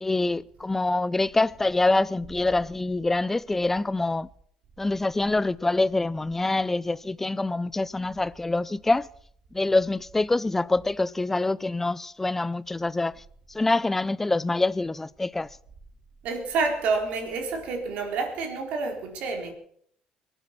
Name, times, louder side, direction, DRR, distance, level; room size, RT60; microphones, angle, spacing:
voice 1, 0.0-4.3 4.8-9.1 9.5-13.2 13.5-15.5, left 2 dB, 15° left, 0.5 m, -25 dB
voice 2, 16.2-19.5, right 4 dB, 75° right, 4.0 m, -28 dB
23.0 x 9.1 x 6.0 m
cardioid pair, 105°, 2 cm